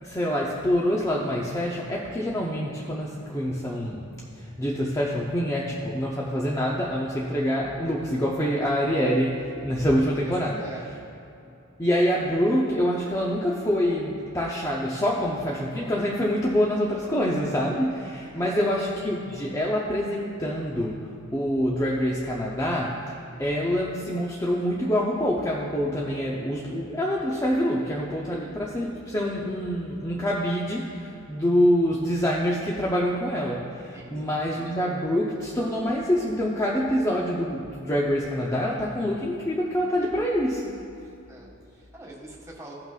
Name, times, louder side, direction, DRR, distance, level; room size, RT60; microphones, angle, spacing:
voice 1, 0.0-4.1 4.4-10.6 11.8-40.8, equal, 15° left, -4 dB, 0.6 m, -26 dB
voice 2, 10.2-10.9 18.3-18.7 33.9-34.4 41.3-42.7, right 1 dB, 15° right, -4 dB, 1.8 m, -44 dB
16.5 x 5.8 x 2.4 m, 2.7 s
head